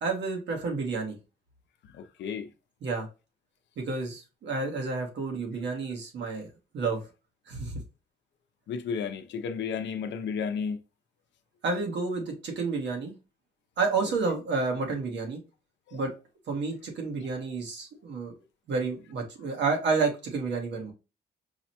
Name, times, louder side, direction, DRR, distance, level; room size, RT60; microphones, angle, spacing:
voice 1, 0.0-1.2 2.8-3.1 3.8-6.5 6.7-7.0 7.5-7.8 11.6-13.1 13.8-15.4 15.9-16.1 16.5-18.3 18.7-20.9, right 4 dB, 75° right, 1.2 m, -30 dB
voice 2, 1.8-2.5 8.7-10.8 15.9-16.1, left 6 dB, 75° left, 0.6 m, -33 dB
4.7 x 2.2 x 2.8 m
cardioid pair, 100°, 19 cm